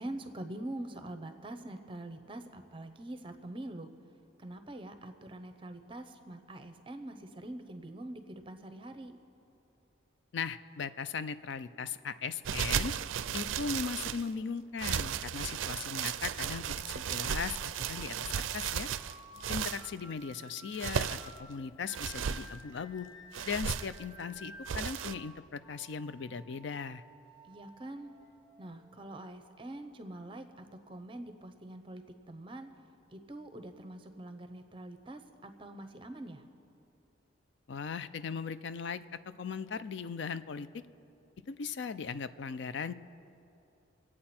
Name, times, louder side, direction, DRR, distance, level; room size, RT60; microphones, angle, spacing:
voice 1, 0.0-3.9 4.4-9.2 27.5-28.1 28.6-32.7 33.1-36.4, right 1 dB, 25° right, 8 dB, 0.8 m, -44 dB
voice 2, 10.3-13.0 13.3-18.9 19.5-23.1 23.5-27.0 37.7-40.8 41.5-42.9, left 5 dB, 60° left, 14 dB, 0.4 m, -38 dB
sound 1, 12.4-14.3 14.8-19.9 20.6-21.4 21.9-22.5 23.3-24.0 24.7-25.1, right 8 dB, 80° right, 0.4 m, -35 dB
sound 2, 16.6-29.4, left 1 dB, 80° left, 2.2 m, -55 dB
25.5 x 8.6 x 4.3 m, 2.9 s
head